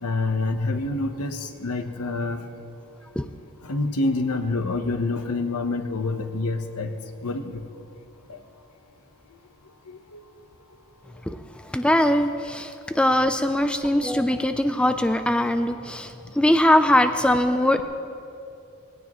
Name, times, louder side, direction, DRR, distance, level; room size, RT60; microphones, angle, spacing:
voice 1, 0.0-2.4 3.6-6.9 7.2-7.6 8.3-8.4 9.9-10.0 17.8-17.9, left 2 dB, 90° left, 6 dB, 1.0 m, -27 dB
voice 2, 11.7-17.8, left 1 dB, 5° left, 8 dB, 0.4 m, -21 dB
20.0 x 17.0 x 3.1 m, 2.6 s
head